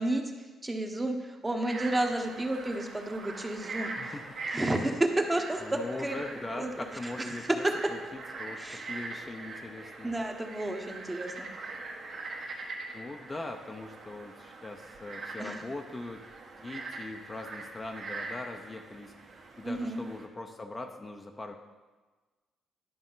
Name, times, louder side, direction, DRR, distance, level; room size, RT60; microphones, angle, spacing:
voice 1, 0.0-4.1 4.5-6.7 7.5-7.8 8.6-8.9 10.0-11.5 15.4-15.6 19.6-20.0, right 1 dB, 15° right, 3 dB, 1.0 m, -31 dB
Frog, 1.5-20.2, right 3 dB, 60° right, 1.4 m, -42 dB
voice 2, 4.0-4.5 5.6-7.6 7.9-8.0 8.4-10.2 12.9-16.2 16.5-19.1 19.6-21.5, left 2 dB, 25° left, 3 dB, 0.7 m, -41 dB
11.0 x 5.2 x 3.9 m, 1.3 s
cardioid pair, 90°, 0 cm